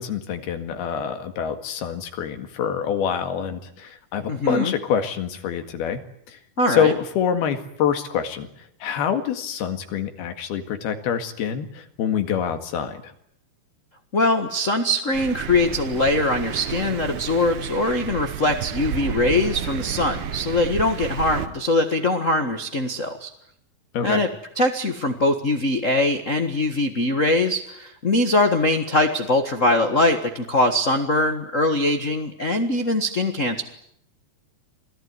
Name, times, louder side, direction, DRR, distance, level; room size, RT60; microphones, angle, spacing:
voice 1, 0.0-6.0 6.3-6.4 6.7-8.5 8.8-13.1 23.9-24.2, left 8 dB, 90° left, 7 dB, 3.9 m, -26 dB
voice 2, 4.3-4.7 6.6-6.9 14.1-23.3 24.0-24.3 24.5-33.6, left 2 dB, 70° left, 6 dB, 0.7 m, -22 dB
Thunder, 15.1-21.5, right 10 dB, 85° right, 3.1 m, -31 dB
28.0 x 19.0 x 9.6 m, 0.71 s
omnidirectional pair, 4.3 m